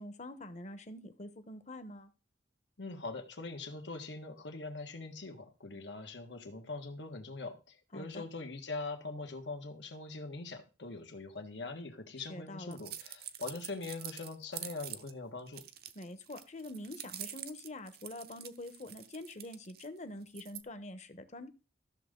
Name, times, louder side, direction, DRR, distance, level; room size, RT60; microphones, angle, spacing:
voice 1, 0.0-2.1 7.9-8.2 12.3-12.8 15.9-21.5, left 1 dB, 40° left, 1.0 m, -45 dB
voice 2, 2.8-15.6, left 3 dB, 90° left, 1.7 m, -42 dB
sound 1, 12.7-15.1 15.5-19.9 20.3-20.6, right 11 dB, 60° right, 0.8 m, -46 dB
13.5 x 6.6 x 3.8 m
head